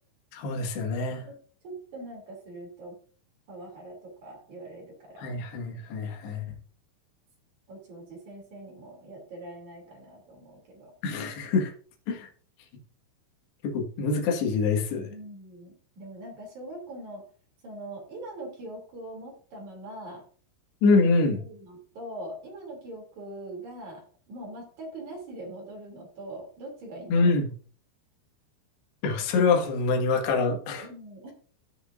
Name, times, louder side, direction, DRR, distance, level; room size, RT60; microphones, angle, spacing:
voice 1, 0.3-1.2 5.2-6.5 11.0-11.7 12.1-12.3 13.6-15.1 20.8-21.4 27.1-27.5 29.0-30.9, left 4 dB, 65° left, 1 dB, 3.5 m, -25 dB
voice 2, 1.6-3.0 3.5-5.3 7.7-10.9 15.1-17.2 17.6-20.2 20.9-21.0 21.3-27.3 30.8-31.3, right 1 dB, 40° right, 0 dB, 3.6 m, -42 dB
16.0 x 6.4 x 2.6 m, 0.43 s
omnidirectional pair, 6.0 m